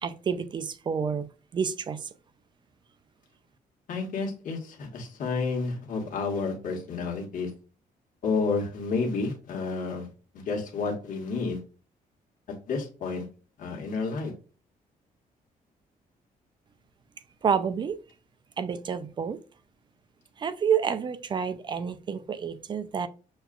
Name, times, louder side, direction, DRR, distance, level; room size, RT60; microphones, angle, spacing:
voice 1, 0.0-1.3 1.5-2.1 17.4-18.0 18.6-19.4 20.4-23.1, right 7 dB, 30° right, 0.4 m, -29 dB
voice 2, 3.9-7.5 8.2-10.1 10.3-11.6 12.5-13.2 13.6-14.3, left 4 dB, 60° left, 1.2 m, -30 dB
6.3 x 2.3 x 2.3 m
cardioid pair, 140°, 15 cm